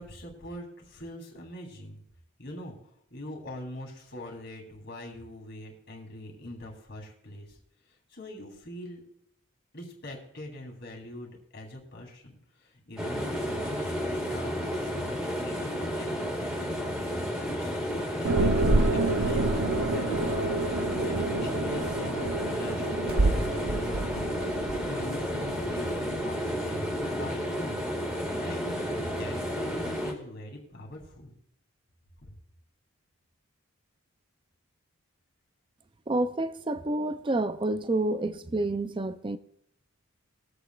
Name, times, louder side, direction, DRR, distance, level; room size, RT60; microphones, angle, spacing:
voice 1, 0.0-2.0 2.4-2.7 3.1-7.6 8.1-9.0 9.7-16.6 17.0-19.6 19.9-20.6 21.0-27.8 28.4-28.7 29.0-31.3 32.2-32.3, left 1 dB, 50° left, 2.8 m, -42 dB
sound 1, 13.0-30.1, equal, 5° right, 1.9 m, -32 dB
sound 2, 18.2-26.2, right 2 dB, 80° right, 0.9 m, -28 dB
voice 2, 36.1-39.4, right 2 dB, 25° right, 0.4 m, -29 dB
22.0 x 8.1 x 2.4 m
head